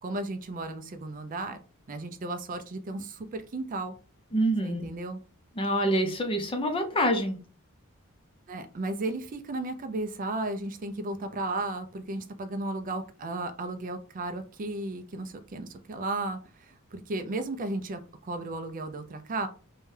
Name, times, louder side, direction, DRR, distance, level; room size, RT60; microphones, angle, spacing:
voice 1, 0.0-1.6 1.9-4.0 4.6-5.2 8.5-19.5, right 2 dB, 40° right, 0.4 m, -34 dB
voice 2, 4.3-4.9 5.6-7.4, equal, 25° left, 0.5 m, -26 dB
2.7 x 2.2 x 3.2 m
head